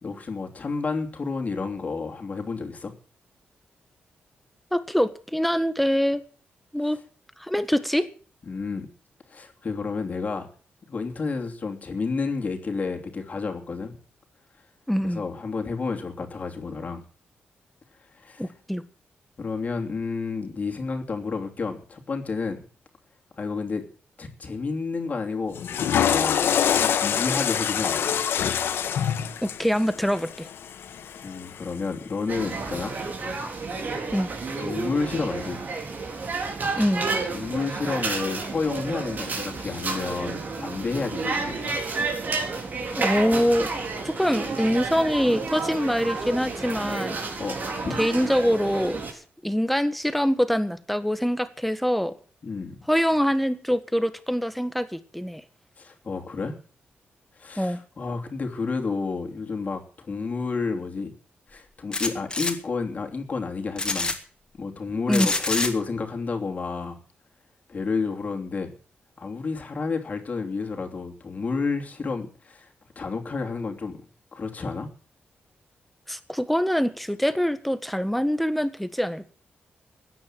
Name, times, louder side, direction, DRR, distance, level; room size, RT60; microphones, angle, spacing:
voice 1, 0.0-2.9 6.9-7.0 8.5-8.9 9.3-10.5 10.9-14.0 15.0-17.0 18.1-18.4 19.4-22.6 23.4-23.8 24.2-28.2 31.2-33.0 33.7-34.0 34.6-35.6 37.3-41.7 47.4-48.0 52.4-52.8 55.8-56.6 57.4-61.1 61.5-64.1 64.6-67.0 67.7-68.7 69.2-72.7 72.9-74.0 74.3-74.9, left 4 dB, 40° left, 3 dB, 3.0 m, -30 dB
voice 2, 4.7-6.2 6.7-7.0 7.4-8.1 14.9-15.2 18.4-18.8 29.4-30.5 34.1-34.3 36.8-37.0 43.0-43.7 44.0-47.2 48.0-52.1 52.9-55.4 57.6-57.8 65.1-65.4 76.1-79.3, equal, ahead, 11 dB, 1.5 m, -24 dB
Water / Toilet flush, 25.5-31.8, left 9 dB, 90° left, 1.3 m, -25 dB
sound 1, 32.3-49.1, right 3 dB, 50° right, 4.3 m, -31 dB
sound 2, 61.9-62.5 63.8-64.1 65.1-65.7, left 3 dB, 20° left, 2.7 m, -26 dB
15.5 x 10.0 x 7.5 m, 0.41 s
cardioid pair, 110°, 4 cm